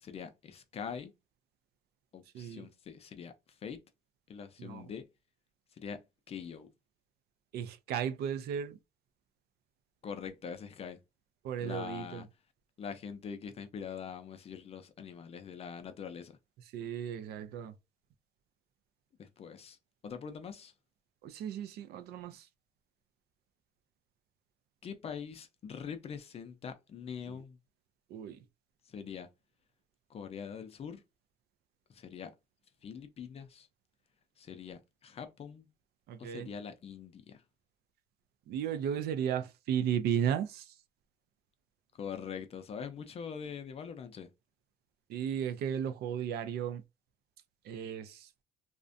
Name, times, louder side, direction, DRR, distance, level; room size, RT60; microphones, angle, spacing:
voice 1, 0.0-1.1 2.1-3.3 3.6-3.8 4.3-5.1 5.8-6.0 6.3-6.7 10.0-11.0 11.6-12.3 12.8-16.3 19.2-19.8 20.0-20.7 24.8-27.6 28.9-29.3 30.1-31.0 31.9-32.3 32.8-33.7 34.4-35.7 36.2-37.4 42.0-44.3, left 7 dB, 35° left, 0.4 m, -43 dB
voice 2, 7.5-8.8 11.4-12.2 16.7-17.7 21.2-22.4 27.3-27.4 28.1-28.4 36.1-36.5 38.5-40.7 45.1-46.8 47.7-48.3, right 8 dB, 70° right, 0.4 m, -35 dB
2.4 x 2.1 x 2.5 m
cardioid pair, 110°, 17 cm